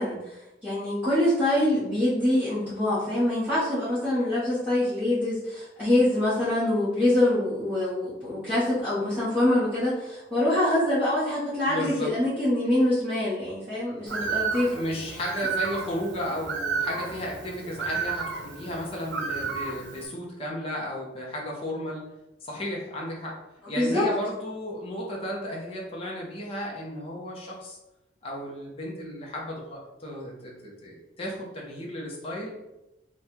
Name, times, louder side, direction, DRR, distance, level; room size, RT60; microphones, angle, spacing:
voice 1, 0.0-14.8 23.7-24.1, left 1 dB, 10° right, -14 dB, 1.4 m, -25 dB
voice 2, 11.7-12.1 14.7-22.1 22.4-23.4 23.7-27.8 28.2-32.6, equal, 30° left, -3 dB, 0.8 m, -34 dB
Bird, 14.1-20.1, right 5 dB, 80° right, 0.7 m, -32 dB
3.5 x 2.5 x 4.4 m, 0.95 s
head